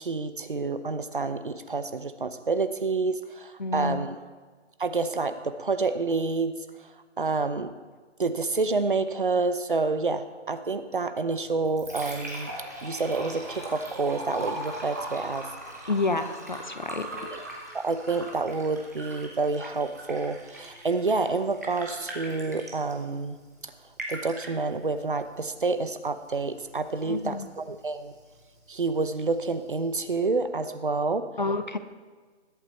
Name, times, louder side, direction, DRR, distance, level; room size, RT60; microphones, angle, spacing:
voice 1, 0.0-4.2 4.8-6.6 7.2-7.7 8.2-12.5 12.8-15.5 17.3-17.4 17.8-23.4 23.6-23.7 24.1-28.1 28.7-31.3, right 3 dB, 45° right, 11 dB, 0.9 m, -28 dB
voice 2, 3.6-4.1 15.9-17.3 27.0-27.5 31.4-31.8, left 3 dB, 40° left, 10 dB, 0.7 m, -29 dB
Liquid, 11.4-30.4, right 1 dB, 15° right, 1.0 m, -41 dB
20.5 x 8.3 x 4.5 m, 1.5 s
figure-of-eight pair, 170°, 35 cm